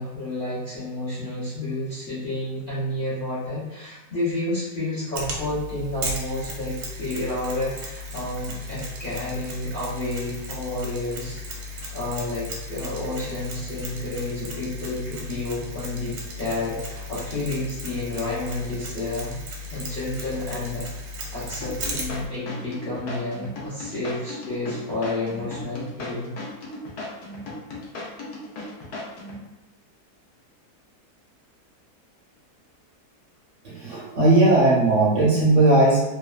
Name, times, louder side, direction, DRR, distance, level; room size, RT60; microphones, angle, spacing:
voice 1, 0.0-19.3 19.7-26.3, left 2 dB, 45° left, -11 dB, 0.7 m, -30 dB
Mechanisms, 5.2-22.3, left 1 dB, 80° right, 1.2 m, -36 dB
sound 1, 21.6-29.4, left 2 dB, 75° left, 1.2 m, -36 dB
voice 2, 33.6-36.0, right 2 dB, 65° right, -6 dB, 0.9 m, -18 dB
2.9 x 2.1 x 2.3 m, 1.0 s
omnidirectional pair, 1.7 m